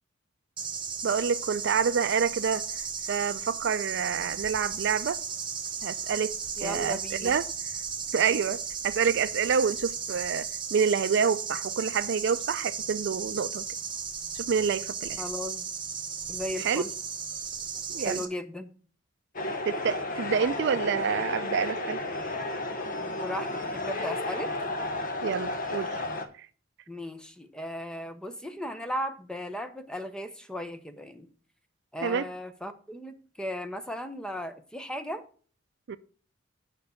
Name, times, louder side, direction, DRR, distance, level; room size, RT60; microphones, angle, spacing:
sound 1, 0.6-18.2, right 6 dB, 25° right, 1.0 m, -35 dB
voice 1, 1.0-2.6 3.1-5.2 5.8-6.3 6.6-7.4 8.1-13.7 14.3-15.2 16.6-16.8 17.9-18.2 19.7-22.0 25.2-26.0 32.0-32.3 35.9-36.0, right 6 dB, 65° right, 0.4 m, -27 dB
voice 2, 6.6-7.3 15.2-15.7 16.3-16.9 18.0-18.7 23.0-24.5 26.9-31.3 31.9-35.2, equal, 5° left, 0.7 m, -36 dB
sound 2, 19.3-26.2, left 2 dB, 45° left, 0.9 m, -32 dB
6.6 x 5.3 x 6.9 m
head